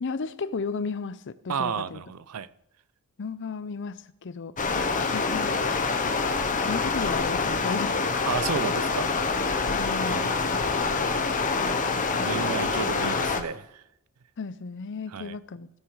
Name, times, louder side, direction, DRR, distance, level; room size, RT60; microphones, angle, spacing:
voice 1, 0.0-2.0 3.2-5.6 6.6-8.1 9.7-10.3 11.6-12.7 13.1-13.2 14.4-15.7, left 4 dB, 55° left, 0.6 m, -35 dB
voice 2, 1.5-2.5 8.3-9.1 10.1-10.6 12.2-13.8 15.1-15.4, right 6 dB, 80° right, 0.5 m, -32 dB
Stream, 4.6-13.4, left 4 dB, 35° left, 1.0 m, -26 dB
17.0 x 6.4 x 4.7 m
head